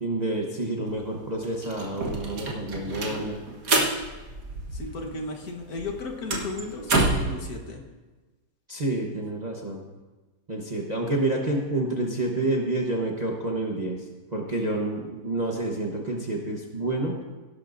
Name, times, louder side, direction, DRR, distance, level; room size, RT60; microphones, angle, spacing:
voice 1, 0.0-3.4 8.7-9.8 10.5-14.0 14.3-17.2, right 2 dB, 30° right, -1 dB, 0.9 m, -28 dB
sound 1, 0.9-1.0 1.2-5.2 5.4-7.4, right 2 dB, 55° right, 1.7 m, -28 dB
voice 2, 4.7-7.8, left 3 dB, 60° left, 2 dB, 1.7 m, -35 dB
17.0 x 11.5 x 2.6 m, 1.2 s
omnidirectional pair, 1.9 m